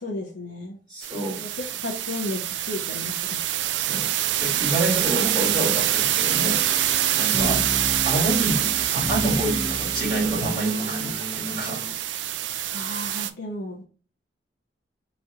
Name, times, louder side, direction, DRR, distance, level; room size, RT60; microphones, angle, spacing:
voice 1, 0.0-0.8 1.4-1.5 1.8-3.4 7.3-7.6 12.7-13.8, left 1 dB, 75° left, 0.8 m, -33 dB
voice 2, 0.9-1.6 3.8-7.7 8.0-11.8, right 1 dB, 25° right, 1.9 m, -28 dB
sound 1, 1.0-13.3, right 12 dB, 75° right, 0.3 m, -25 dB
sound 2, 6.3-11.9, left 1 dB, 30° left, 0.8 m, -33 dB
4.2 x 3.1 x 2.4 m
head